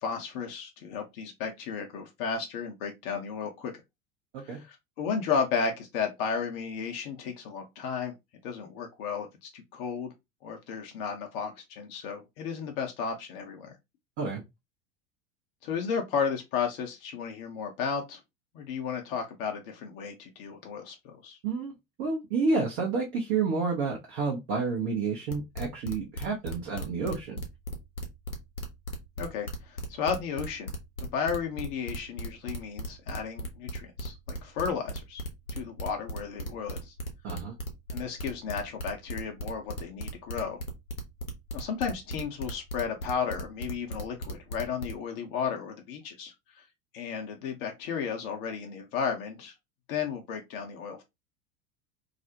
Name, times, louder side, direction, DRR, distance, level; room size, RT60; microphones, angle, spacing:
voice 1, 0.0-3.7 4.4-8.1 8.4-10.1 10.4-13.8 15.6-18.2 18.5-21.4 29.2-30.7 31.0-35.2 35.5-36.9 37.9-40.6 41.5-46.6 46.9-49.5 49.9-51.0, left 6 dB, 45° left, 0.6 m, -33 dB
voice 2, 21.4-21.7 22.0-27.4 37.2-37.5, right 4 dB, 40° right, 0.7 m, -30 dB
sound 1, 25.3-44.9, equal, 85° left, 0.7 m, -36 dB
2.4 x 2.0 x 2.7 m
figure-of-eight pair, 80°, 41 cm